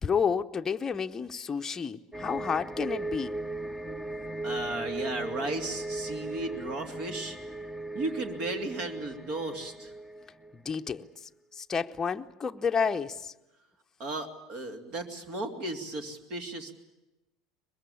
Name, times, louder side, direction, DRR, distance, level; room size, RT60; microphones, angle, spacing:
voice 1, 0.0-3.4 10.5-13.3, left 6 dB, 25° left, 0.8 m, -31 dB
sound 1, 2.1-10.5 10.9-11.0, right 2 dB, 5° right, 1.0 m, -37 dB
voice 2, 4.4-7.4 7.9-9.9 14.0-16.7, right 2 dB, 50° right, 2.9 m, -35 dB
23.5 x 21.5 x 8.6 m
hypercardioid pair, 75°, 2 cm